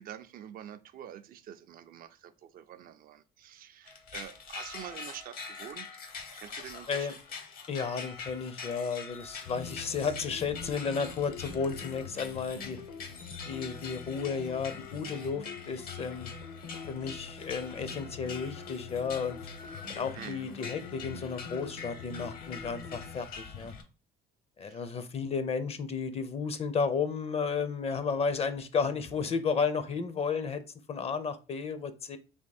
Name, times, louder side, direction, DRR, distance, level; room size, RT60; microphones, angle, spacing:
voice 1, 0.0-6.0 6.3-7.2 20.1-20.5 24.6-24.9, right 10 dB, 60° right, 10 dB, 0.4 m, -46 dB
sound 1, 3.9-23.8, left 5 dB, 60° left, 0.9 m, -45 dB
voice 2, 7.7-12.8 13.5-16.3 16.9-19.4 19.9-23.7 24.6-30.6 30.9-32.2, left 5 dB, 35° left, 11 dB, 0.6 m, -33 dB
sound 2, 9.5-23.2, left 6 dB, 80° left, 1.2 m, -45 dB
3.5 x 2.9 x 4.1 m, 0.33 s
cardioid pair, 110°, 17 cm